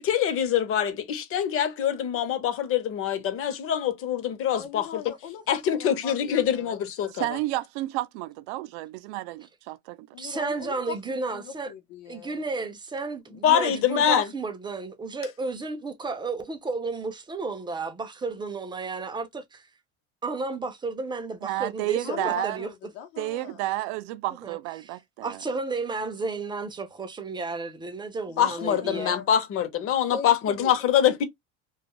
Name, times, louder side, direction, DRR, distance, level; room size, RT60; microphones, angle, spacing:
voice 1, 0.0-5.1 5.5-7.3 13.4-14.3 28.4-31.2, left 9 dB, 40° left, 0.7 m, -24 dB
voice 2, 4.5-6.8 10.1-12.4 22.0-23.6 28.3-29.4 30.0-30.7, left 8 dB, 80° left, 0.8 m, -40 dB
voice 3, 7.1-10.1 21.4-22.6 23.2-25.4, right 17 dB, 85° right, 0.5 m, -31 dB
voice 4, 10.2-11.7 12.1-19.7 20.2-22.7 24.4-24.6 25.2-29.1, right 3 dB, 15° right, 0.4 m, -32 dB
2.5 x 2.3 x 2.9 m
cardioid pair, 125°, 33 cm